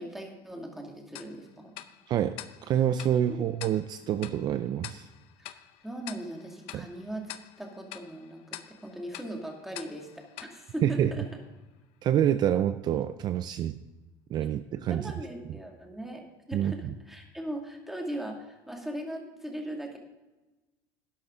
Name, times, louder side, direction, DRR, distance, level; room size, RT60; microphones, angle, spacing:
voice 1, 0.0-1.7 3.3-3.4 5.4-7.3 7.6-11.3 14.9-16.2 16.5-20.0, right 1 dB, 5° right, 1 dB, 2.3 m, -39 dB
Tick-tock, 1.1-11.6, left 14 dB, 65° left, 0.7 m, -47 dB
voice 2, 2.6-5.1 6.7-6.9 10.8-11.1 12.0-13.8 14.3-15.1 16.5-16.9, right 10 dB, 40° right, 11 dB, 0.5 m, -27 dB
12.0 x 10.5 x 3.8 m, 1.1 s
cardioid pair, 130°, 10 cm